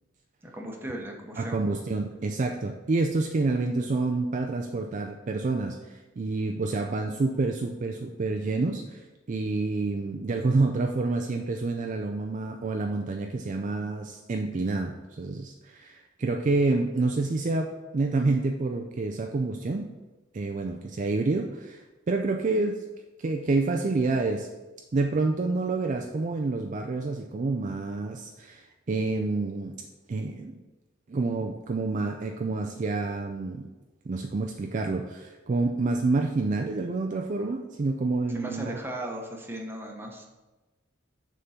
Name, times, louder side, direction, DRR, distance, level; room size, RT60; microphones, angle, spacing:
voice 1, 0.4-1.6 38.3-40.3, right 1 dB, 10° right, 1 dB, 0.9 m, -36 dB
voice 2, 1.4-19.9 20.3-22.8 23.2-24.5 24.9-29.7 30.1-30.6 31.1-33.7 34.1-38.8, right 3 dB, 40° right, 3 dB, 0.4 m, -28 dB
6.6 x 3.8 x 5.6 m, 1.1 s
head